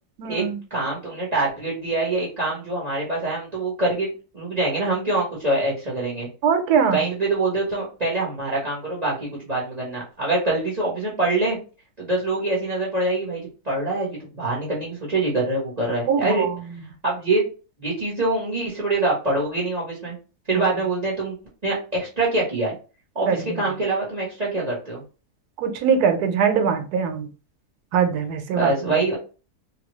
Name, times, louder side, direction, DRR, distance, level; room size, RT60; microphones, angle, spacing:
voice 1, 0.2-0.6 6.4-7.0 16.1-16.6 20.5-20.6 23.3-23.7 25.6-27.3 27.9-29.0, right 6 dB, 85° right, 7 dB, 1.2 m, -22 dB
voice 2, 0.7-6.3 6.9-11.6 12.0-16.4 17.0-17.4 17.8-20.2 20.5-21.3 21.6-22.7 23.1-25.0 28.5-29.2, right 2 dB, 30° right, -4 dB, 1.0 m, -24 dB
3.4 x 2.2 x 3.0 m, 0.34 s
omnidirectional pair, 1.6 m